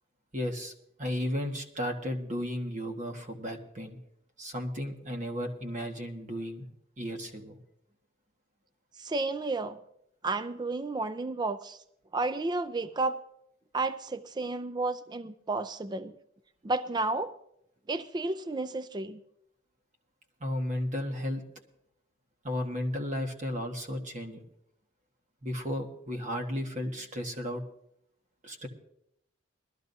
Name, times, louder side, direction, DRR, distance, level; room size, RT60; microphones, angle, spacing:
voice 1, 0.3-0.7 1.0-4.0 4.4-6.6 7.0-7.6 20.4-21.4 22.4-24.4 25.4-27.6 28.4-28.7, equal, 40° right, 4 dB, 1.5 m, -34 dB
voice 2, 9.0-9.8 10.2-11.8 12.1-13.2 13.7-16.1 16.6-17.4 17.9-19.2, right 3 dB, 20° right, 13 dB, 0.4 m, -32 dB
21.0 x 13.5 x 2.7 m, 0.76 s
head